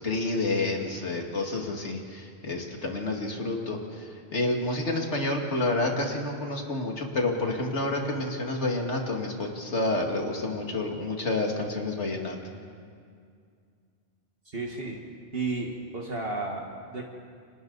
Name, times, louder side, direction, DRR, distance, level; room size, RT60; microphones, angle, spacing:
voice 1, 0.0-12.4, left 2 dB, 85° left, 1 dB, 2.7 m, -29 dB
voice 2, 14.5-15.0 15.3-17.0, right 3 dB, 55° right, -1 dB, 1.9 m, -33 dB
30.0 x 25.0 x 4.0 m, 2.2 s
omnidirectional pair, 1.1 m